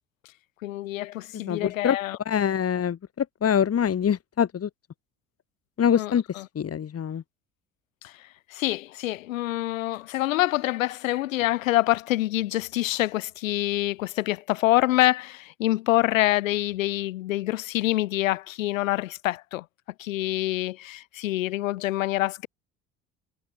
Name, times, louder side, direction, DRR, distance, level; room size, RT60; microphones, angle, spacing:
voice 1, 0.6-2.2 5.9-6.4 8.0-8.1 8.5-19.6 20.0-22.5, left 16 dB, 70° left, 6.8 m, -26 dB
voice 2, 1.5-2.0 2.3-4.7 5.8-6.2 6.6-7.2, left 8 dB, 35° left, 4.1 m, -24 dB
figure-of-eight pair, 60°, 41 cm